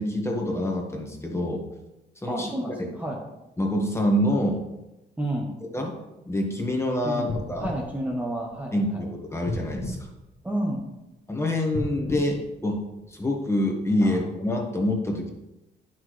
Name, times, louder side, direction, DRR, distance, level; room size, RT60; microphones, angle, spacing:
voice 1, 0.0-1.6 2.2-2.5 2.8-2.9 3.6-4.6 5.7-5.9 6.3-7.7 8.7-10.0 11.3-12.8 13.1-15.3, left 1 dB, 15° left, 1 dB, 1.5 m, -26 dB
voice 2, 2.3-3.2 5.2-5.6 7.0-7.3 7.6-9.0 10.4-10.8 14.0-14.2, right 1 dB, 10° right, -2 dB, 1.1 m, -30 dB
sound 1, 7.3-8.9 9.4-11.0 11.6-13.3 13.9-14.0, left 2 dB, 45° left, 1.5 m, -36 dB
8.9 x 6.0 x 3.2 m, 0.96 s
cardioid pair, 90°, 20 cm